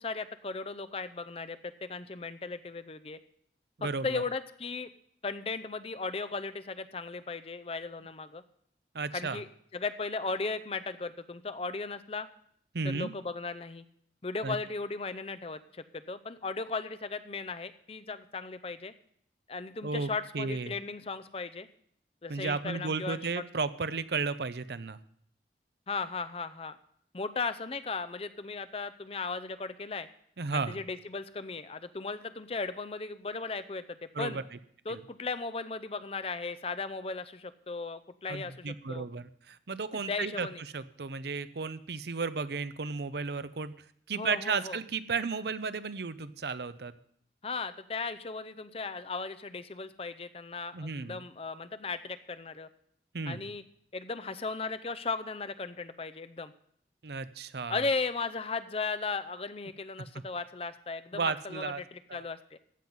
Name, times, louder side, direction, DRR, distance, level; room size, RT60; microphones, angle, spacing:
voice 1, 0.0-3.2 3.8-4.9 5.2-8.4 9.1-9.5 9.7-12.3 12.8-13.8 14.2-18.9 19.5-21.7 22.2-23.4 25.9-26.8 27.1-30.1 30.5-34.4 34.9-39.1 39.9-40.6 44.1-44.8 47.4-52.7 53.3-53.6 53.9-56.5 57.7-62.6, left 4 dB, 35° left, 12 dB, 0.6 m, -36 dB
voice 2, 3.8-4.2 8.9-9.4 12.7-13.1 14.4-14.6 19.8-20.1 20.3-20.7 22.3-25.0 30.4-30.8 34.1-34.4 34.9-35.0 38.3-40.5 40.7-43.7 44.1-46.9 50.7-51.2 53.1-53.5 57.0-57.8 61.1-61.8 62.1-62.2, right 4 dB, 70° right, 14 dB, 0.7 m, -34 dB
15.0 x 5.6 x 9.3 m, 0.65 s
head